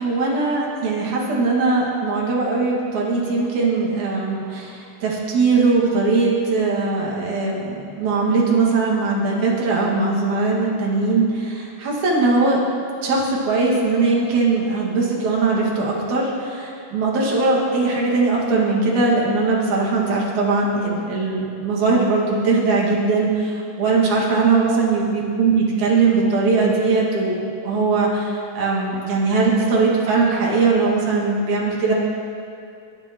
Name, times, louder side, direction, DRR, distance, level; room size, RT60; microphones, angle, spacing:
voice 1, 0.0-12.6 13.0-31.9, right 3 dB, 70° right, -4 dB, 3.4 m, -20 dB
23.0 x 10.0 x 3.0 m, 2.5 s
omnidirectional pair, 3.5 m